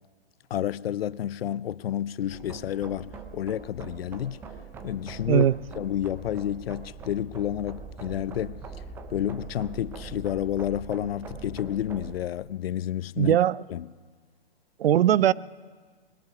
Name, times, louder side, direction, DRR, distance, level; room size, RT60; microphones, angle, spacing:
voice 1, 0.5-4.4 4.8-5.5 5.8-8.6 9.1-13.4 13.7-13.9, left 11 dB, 75° left, 0.5 m, -30 dB
sound 1, 2.3-12.2, right 5 dB, 10° right, 0.5 m, -42 dB
voice 2, 13.2-13.6 14.8-15.3, right 11 dB, 75° right, 0.5 m, -20 dB
20.5 x 12.0 x 5.9 m
hypercardioid pair, 140°, 30 cm